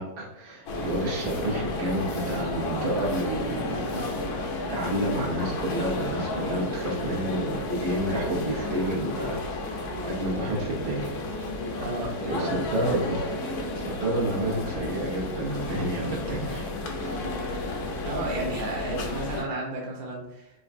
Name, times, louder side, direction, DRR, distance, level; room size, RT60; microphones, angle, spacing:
voice 1, 0.0-4.2 4.6-11.5 12.3-17.3, right 1 dB, 80° right, -4 dB, 1.6 m, -30 dB
sound 1, 0.7-19.4, left 2 dB, 70° left, 0.9 m, -32 dB
voice 2, 11.7-12.6 18.0-20.5, right 2 dB, 55° right, -3 dB, 1.2 m, -33 dB
4.2 x 2.5 x 2.4 m, 0.88 s
omnidirectional pair, 2.2 m